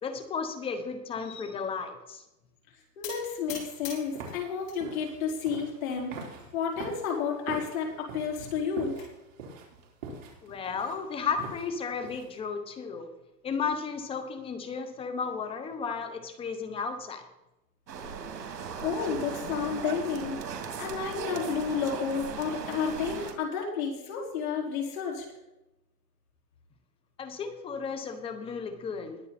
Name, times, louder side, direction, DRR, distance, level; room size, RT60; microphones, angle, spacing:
voice 1, 0.0-2.2 10.4-13.1 13.4-17.3 27.2-29.2, left 5 dB, 10° left, 9 dB, 0.8 m, -34 dB
voice 2, 3.0-6.2 6.5-8.9 18.8-20.4 20.8-25.2, left 6 dB, 55° left, -1 dB, 4.8 m, -31 dB
sound 1, 3.0-4.8 5.2-5.8 6.4-6.5 6.8-6.9 7.2-7.3 8.4-9.1, left 7 dB, 35° left, 4.4 m, -44 dB
sound 2, 3.2-12.4, right 4 dB, 50° right, 4.1 m, -44 dB
sound 3, 17.9-23.3, right 6 dB, 80° right, 2.9 m, -38 dB
21.0 x 8.0 x 4.2 m, 0.93 s
hypercardioid pair, 155°, 50 cm